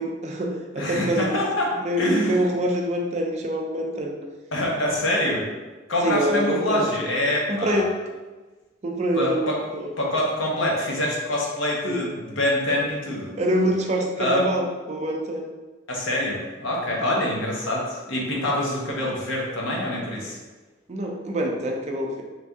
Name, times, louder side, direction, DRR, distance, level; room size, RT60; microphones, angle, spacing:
voice 1, 0.0-1.4 1.8-4.2 6.0-7.0 7.5-8.0 8.8-9.9 11.8-12.1 13.4-15.5 20.9-22.2, right 1 dB, 35° right, 1 dB, 0.4 m, -25 dB
voice 2, 0.7-2.4 4.5-5.4 5.9-7.9 9.1-9.6 10.0-13.3 14.2-14.5 15.9-20.4, left 1 dB, 85° left, -2 dB, 0.9 m, -25 dB
3.2 x 2.6 x 3.4 m, 1.3 s
head